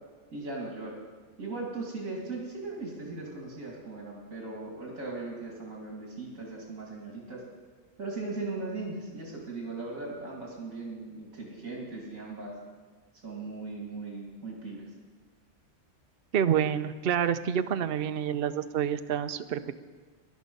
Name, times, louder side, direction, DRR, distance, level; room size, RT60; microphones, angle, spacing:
voice 1, 0.3-1.0 1.4-7.4 8.0-12.5 13.2-14.8, right 3 dB, 75° right, -2 dB, 2.8 m, -38 dB
voice 2, 16.3-19.8, right 9 dB, 55° right, 10 dB, 0.7 m, -28 dB
18.0 x 11.5 x 5.4 m, 1.5 s
omnidirectional pair, 1.4 m